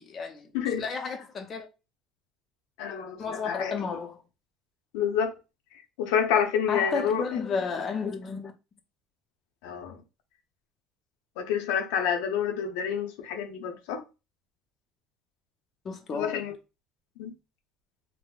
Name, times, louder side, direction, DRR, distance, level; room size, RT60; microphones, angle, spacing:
voice 1, 0.0-0.5 0.8-1.7 3.2-4.2 6.7-8.5 15.8-16.4, left 5 dB, 35° left, 0.6 m, -32 dB
voice 2, 0.5-0.9 2.8-3.8 4.9-5.3 6.0-7.2 9.6-10.0 11.4-14.0 16.1-16.5 17.2-17.3, left 8 dB, 90° left, 0.6 m, -28 dB
3.6 x 2.0 x 2.4 m
cardioid pair, 135°, 0 cm